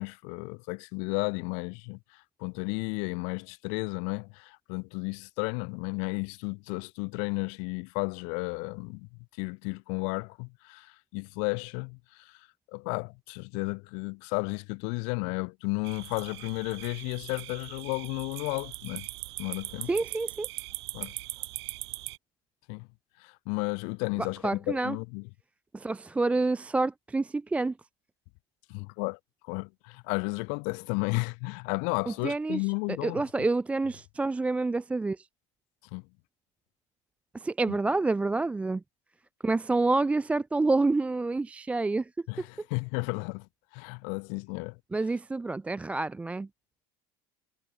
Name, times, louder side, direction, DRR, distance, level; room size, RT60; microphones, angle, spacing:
voice 1, 0.0-9.1 9.4-12.4 12.7-19.1 19.4-19.9 20.9-21.1 22.7-22.9 23.2-25.3 28.7-33.2 35.9-36.0 37.7-37.8 42.3-43.5 43.7-44.8, left 39 dB, 65° left, 0.7 m, -33 dB
sound 1, 15.8-22.2, right 19 dB, 90° right, 0.7 m, -40 dB
voice 2, 19.9-20.5 24.4-25.0 25.7-27.7 32.1-32.6 33.0-35.3 37.3-38.8 39.4-42.1 42.4-42.5 44.9-46.5, right 3 dB, 10° right, 0.4 m, -28 dB
supercardioid pair, 125°, 13 cm